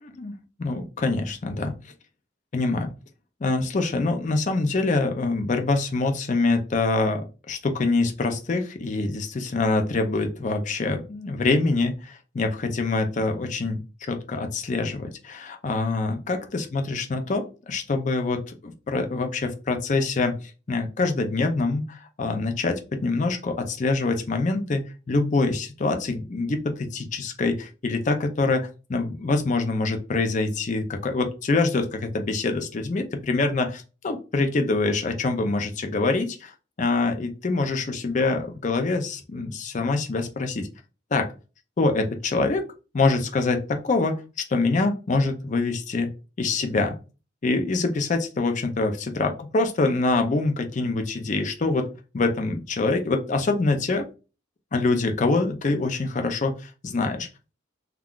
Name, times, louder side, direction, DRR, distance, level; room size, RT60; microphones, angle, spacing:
voice 1, 0.0-1.7 2.5-2.9 3.4-20.4 20.7-40.7 41.1-41.3 41.8-42.7 42.9-46.1 46.4-47.0 47.4-54.1 54.7-57.3, left 3 dB, 40° left, 6 dB, 0.4 m, -25 dB
2.3 x 2.3 x 3.6 m, 0.32 s
head